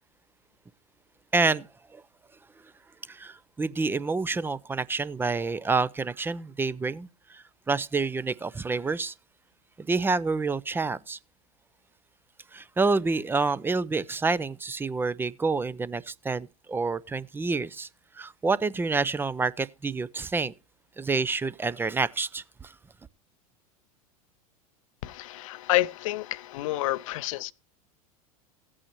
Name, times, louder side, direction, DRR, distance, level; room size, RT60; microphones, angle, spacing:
voice 1, 1.3-1.7 1.9-2.0 3.1-9.1 9.8-11.2 12.5-17.9 18.2-20.5 21.0-22.7, right 4 dB, 10° right, 0.5 m, -28 dB
voice 2, 25.0-27.5, left 17 dB, 60° left, 0.6 m, -29 dB
16.0 x 8.7 x 3.0 m
hypercardioid pair, 85°, 19 cm